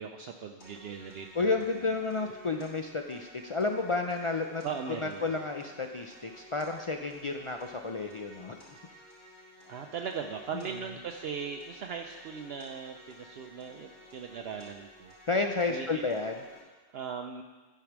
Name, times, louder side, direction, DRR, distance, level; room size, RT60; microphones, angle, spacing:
voice 1, 0.0-1.5 4.6-5.3 9.7-15.1 15.7-16.0 16.9-17.4, right 6 dB, 65° right, 4 dB, 0.8 m, -39 dB
sound 1, 0.6-16.6, left 1 dB, 80° left, 3.2 m, -54 dB
voice 2, 1.3-8.6 10.5-10.6 15.3-16.4, left 3 dB, 50° left, 4 dB, 0.4 m, -31 dB
10.5 x 4.8 x 6.0 m, 1.3 s
omnidirectional pair, 1.1 m